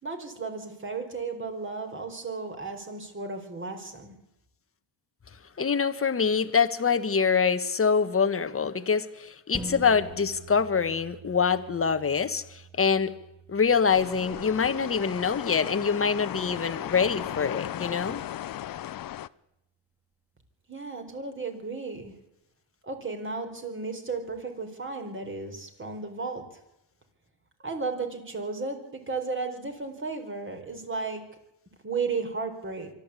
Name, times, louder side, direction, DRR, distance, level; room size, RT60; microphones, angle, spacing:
voice 1, 0.0-4.2 20.7-22.1 22.9-26.4 27.6-31.2 31.8-32.9, right 4 dB, 25° right, 5 dB, 4.5 m, -34 dB
voice 2, 5.6-13.1 13.5-18.2, left 6 dB, 30° left, 11 dB, 1.5 m, -25 dB
sound 1, 9.5-18.3 18.8-18.9, right 2 dB, 5° right, 2.5 m, -47 dB
sound 2, 13.9-19.3, left 12 dB, 45° left, 0.7 m, -36 dB
24.0 x 13.5 x 8.5 m, 0.87 s
cardioid pair, 95°, 46 cm